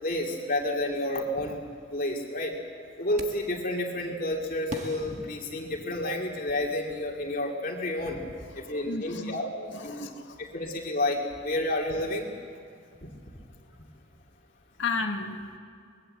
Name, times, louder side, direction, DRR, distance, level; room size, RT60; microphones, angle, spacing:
voice 1, 0.0-1.6 1.9-2.5 3.0-8.2 8.5-9.5 9.8-10.1 10.4-12.3 13.0-13.1, left 1 dB, 45° left, 0 dB, 2.6 m, -30 dB
sound 1, 3.2-3.6 4.7-6.2, right 1 dB, 35° right, 1.6 m, -41 dB
voice 2, 8.6-10.4 14.8-15.4, left 4 dB, 70° left, 3 dB, 1.9 m, -34 dB
24.5 x 20.5 x 7.9 m, 2.3 s
head